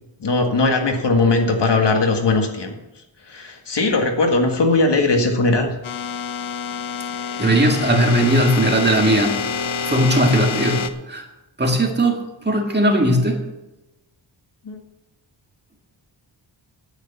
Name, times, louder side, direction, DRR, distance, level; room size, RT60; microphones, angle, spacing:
voice 1, 0.2-2.8 3.3-5.7 14.7-14.8, left 3 dB, 60° left, 3 dB, 1.9 m, -19 dB
sound 1, 5.8-10.9, left 5 dB, 80° left, 1.0 m, -27 dB
voice 2, 7.4-9.5 9.8-11.3 11.6-13.4, right 1 dB, 20° right, 2 dB, 2.0 m, -18 dB
9.9 x 9.2 x 7.1 m, 0.99 s
wide cardioid pair, 120°, 46 cm